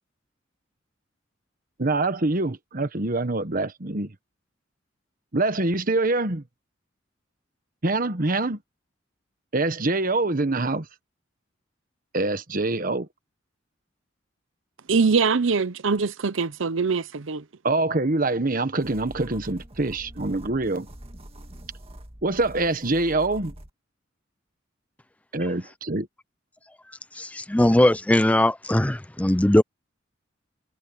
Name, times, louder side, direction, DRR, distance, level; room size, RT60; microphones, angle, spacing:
voice 1, 1.8-4.1 5.3-6.4 7.8-8.6 9.5-10.9 12.1-13.1 17.6-20.9 22.2-23.5 25.3-26.1, right 2 dB, 45° right, 1.3 m, -25 dB
voice 2, 14.9-17.4, right 5 dB, 85° right, 0.7 m, -23 dB
sound 1, 18.8-23.7, right 1 dB, 30° right, 1.8 m, -44 dB
voice 3, 27.2-29.6, left 1 dB, 5° left, 0.5 m, -20 dB
head